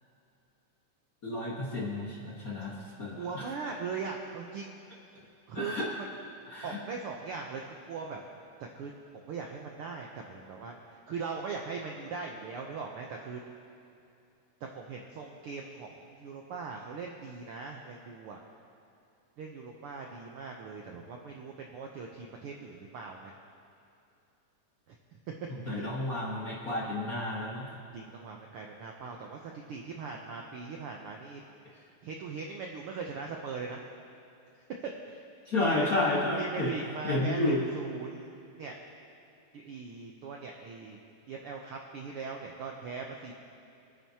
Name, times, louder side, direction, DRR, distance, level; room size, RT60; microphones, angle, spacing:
voice 1, 1.2-3.4 5.5-5.8 6.5-6.8 25.7-27.7 35.5-36.7 37.0-37.7, left 2 dB, 40° left, -5 dB, 1.3 m, -31 dB
voice 2, 3.2-4.8 5.5-6.3 6.6-8.2 8.6-10.7 11.1-13.4 14.7-18.4 19.4-23.3 24.9-25.0 25.6-25.9 27.9-31.4 32.0-33.8 34.8-35.2 35.6-35.9 36.4-38.3 38.6-38.7 39.5-41.0 41.3-43.3, right 5 dB, 85° right, 1 dB, 1.2 m, -40 dB
26.0 x 9.4 x 2.9 m, 2.7 s
omnidirectional pair, 3.5 m